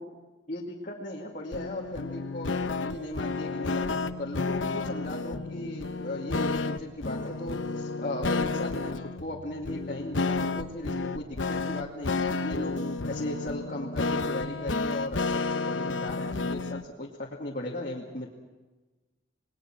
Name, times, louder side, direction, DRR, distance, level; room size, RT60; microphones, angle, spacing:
voice 1, 0.5-12.8 13.1-18.3, left 1 dB, 45° left, -3 dB, 2.3 m, -37 dB
sound 1, 1.5-16.8, left 3 dB, 85° left, 0.9 m, -31 dB
28.0 x 20.0 x 6.1 m, 1.2 s
head